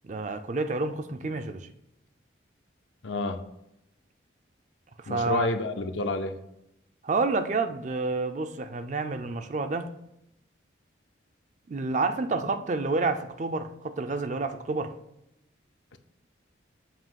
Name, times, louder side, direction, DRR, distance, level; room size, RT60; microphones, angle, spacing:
voice 1, 0.0-1.7 5.0-5.5 7.0-9.9 11.7-14.9, right 3 dB, 35° right, 0.4 m, -29 dB
voice 2, 3.0-3.4 5.1-6.3 15.9-16.0, left 2 dB, 70° left, 0.6 m, -29 dB
7.4 x 2.8 x 5.6 m
head